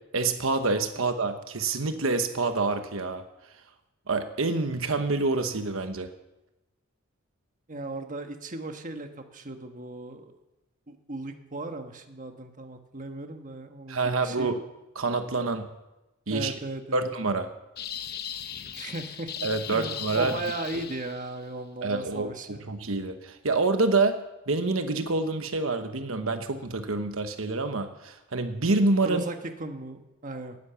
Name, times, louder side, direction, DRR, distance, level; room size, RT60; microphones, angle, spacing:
voice 1, 0.1-3.2 4.1-6.1 13.9-14.6 15.0-15.7 16.3-16.5 16.9-17.5 19.4-20.4 21.8-24.2 24.5-29.2, right 3 dB, 75° right, 8 dB, 1.1 m, -27 dB
voice 2, 7.7-10.3 10.9-14.5 16.3-17.0 18.7-22.6 29.0-30.6, right 2 dB, 40° right, 6 dB, 1.4 m, -37 dB
sound 1, 17.8-21.4, left 9 dB, 50° left, 0.9 m, -38 dB
18.5 x 10.5 x 7.0 m, 1.0 s
head